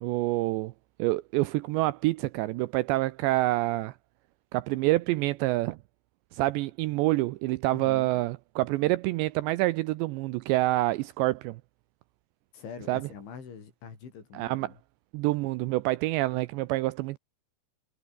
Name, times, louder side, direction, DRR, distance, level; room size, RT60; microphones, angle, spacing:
voice 1, 0.0-0.7 1.0-4.0 4.5-5.8 6.3-11.6 12.9-13.0 14.3-14.7 15.1-17.2, right 19 dB, 85° right, 2.5 m, -27 dB
voice 2, 7.7-8.2 12.5-14.8, left 6 dB, 70° left, 7.5 m, -44 dB
omnidirectional pair, 5.7 m